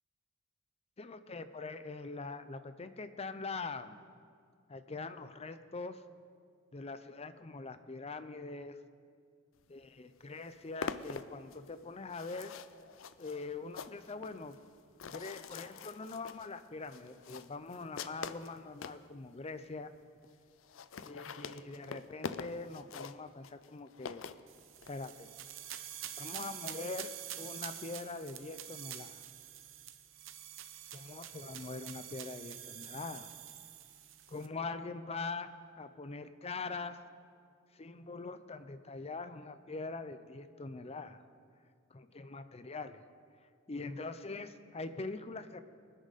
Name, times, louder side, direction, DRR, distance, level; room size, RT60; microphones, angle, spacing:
voice 1, 1.0-4.0 4.7-6.0 6.7-8.8 9.7-12.5 13.2-14.6 15.1-19.9 21.0-24.2 24.9-25.3 26.2-27.1 27.4-29.2 30.9-33.3 34.3-35.5 35.8-37.0 37.7-41.2 41.9-43.0 43.7-45.6, left 3 dB, 30° left, 11 dB, 0.6 m, -43 dB
sound 1, 9.8-9.9 10.2-19.0 19.6-19.7 19.9-20.0 20.2-20.3 20.6-25.0, left 5 dB, 75° left, 0.5 m, -45 dB
sound 2, 24.5-34.5, right 11 dB, 75° right, 0.9 m, -47 dB
24.5 x 10.0 x 4.1 m, 2.2 s
head